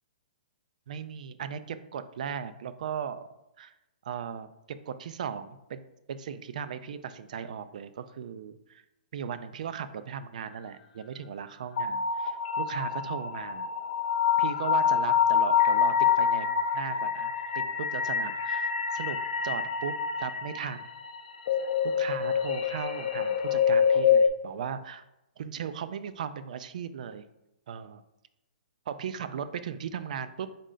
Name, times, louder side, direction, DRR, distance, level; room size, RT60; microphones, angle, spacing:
voice 1, 0.9-3.3 3.6-3.7 4.0-5.8 6.1-8.8 9.1-13.7 14.4-19.2 19.4-20.9 21.8-25.0 25.4-27.2 27.7-28.0 28.9-30.5, right 7 dB, 55° right, 13 dB, 0.3 m, -37 dB
sound 1, 11.8-24.3, left 7 dB, 55° left, 0.5 m, -26 dB
3.7 x 3.1 x 3.8 m, 0.93 s
hypercardioid pair, 165°, 5 cm